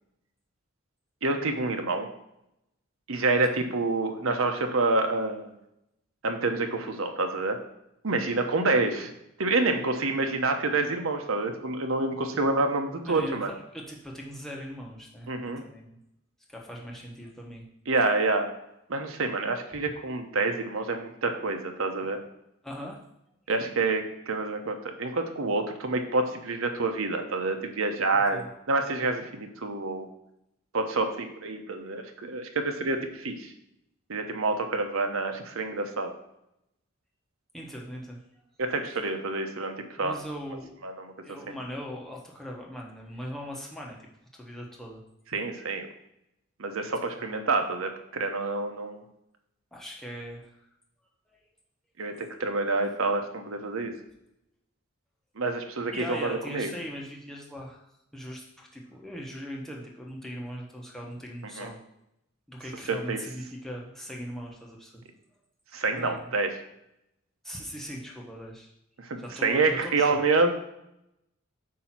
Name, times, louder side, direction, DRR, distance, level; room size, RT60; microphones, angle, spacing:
voice 1, 1.2-2.1 3.1-5.5 6.2-7.6 8.0-9.1 9.4-13.5 15.3-15.6 17.9-18.5 18.9-22.2 23.5-28.4 28.7-30.1 30.7-33.5 34.1-36.1 38.6-40.2 40.8-41.1 45.3-45.9 46.6-49.0 52.0-53.9 55.4-56.7 61.6-61.7 62.9-63.2 65.7-66.6 69.0-70.5, right 3 dB, 90° right, 5 dB, 0.9 m, -27 dB
voice 2, 13.0-15.3 15.6-16.0 16.5-17.6 19.8-19.9 22.6-23.0 28.3-28.5 37.5-38.2 40.0-40.7 41.2-45.0 47.2-47.3 49.7-50.7 51.3-51.4 55.9-61.8 62.5-65.0 65.9-66.3 67.4-68.7 69.2-70.2, equal, ahead, -2 dB, 1.0 m, -40 dB
8.3 x 2.8 x 5.9 m, 0.81 s
head